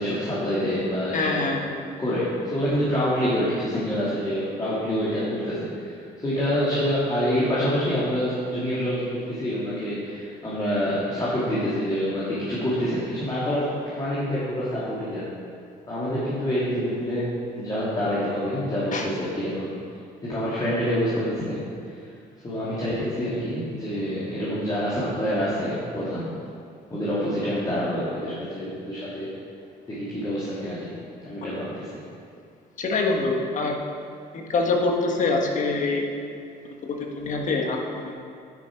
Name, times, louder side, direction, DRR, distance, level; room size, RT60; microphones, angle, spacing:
voice 1, 0.0-1.3 2.0-15.3 15.9-19.7 20.2-22.1 22.4-26.3 26.9-29.3 29.9-30.9 31.2-32.0, equal, 20° left, -9 dB, 2.5 m, -27 dB
voice 2, 1.1-1.7 18.9-19.1 32.8-33.8 34.3-36.1 36.8-38.2, left 3 dB, 50° left, 1 dB, 1.4 m, -25 dB
10.0 x 9.6 x 4.6 m, 2.3 s
cardioid pair, 110°, 17 cm